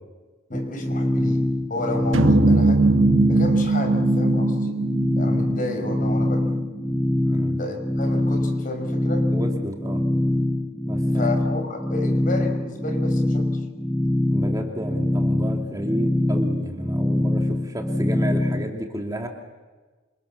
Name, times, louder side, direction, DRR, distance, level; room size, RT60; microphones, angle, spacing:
voice 1, 0.5-3.0 3.3-4.8 5.1-6.5 7.5-9.3 11.0-13.5, left 2 dB, 45° left, 5 dB, 5.8 m, -32 dB
sound 1, 0.5-18.7, left 1 dB, ahead, 1.4 m, -24 dB
sound 2, 2.1-6.5, right 3 dB, 85° right, 1.3 m, -21 dB
voice 2, 7.2-7.6 9.3-10.0 10.8-11.3 14.3-19.3, right 1 dB, 20° right, 2 dB, 2.6 m, -32 dB
28.0 x 27.5 x 7.2 m, 1.3 s
head